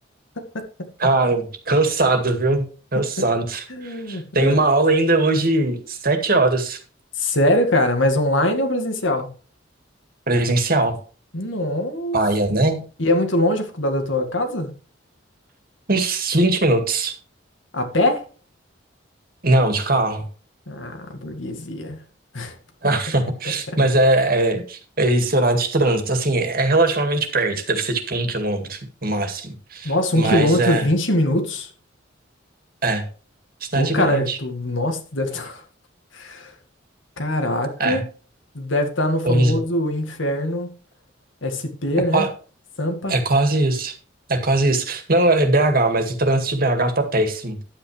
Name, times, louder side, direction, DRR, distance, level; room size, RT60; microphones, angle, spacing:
voice 1, 1.0-6.8 10.3-11.0 12.1-12.8 15.9-17.1 19.4-20.2 22.8-30.9 32.8-33.0 33.6-34.4 37.8-38.0 39.2-39.6 42.1-42.3 43.1-43.9 44.3-47.6, right 2 dB, 50° right, 2.0 m, -20 dB
voice 2, 3.7-4.6 7.2-9.3 11.3-12.2 13.0-14.7 17.7-18.3 20.7-22.0 22.3-22.6 23.5-23.8 29.8-31.7 33.7-35.6 36.1-36.5 37.2-38.1 38.5-40.7 41.4-42.3 42.8-43.1 45.4-45.6, left 1 dB, 85° left, 2.1 m, -22 dB
11.5 x 8.6 x 3.3 m
head